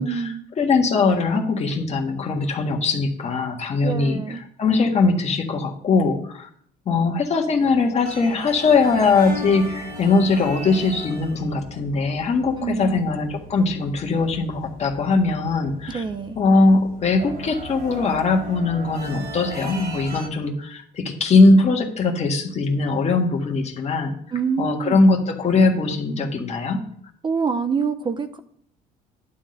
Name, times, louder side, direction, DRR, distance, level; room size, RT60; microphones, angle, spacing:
voice 1, 0.0-0.4 3.8-4.4 12.6-13.0 15.9-16.4 24.3-25.1 27.2-28.4, right 5 dB, 30° right, 10 dB, 0.6 m, -26 dB
voice 2, 0.6-6.5 6.9-16.0 16.4-24.1 24.6-26.8, left 3 dB, 40° left, 2 dB, 1.6 m, -20 dB
sound 1, 8.0-20.3, equal, 60° right, 2.9 m, -37 dB
11.0 x 3.7 x 7.6 m, 0.65 s
cardioid pair, 110°, 17 cm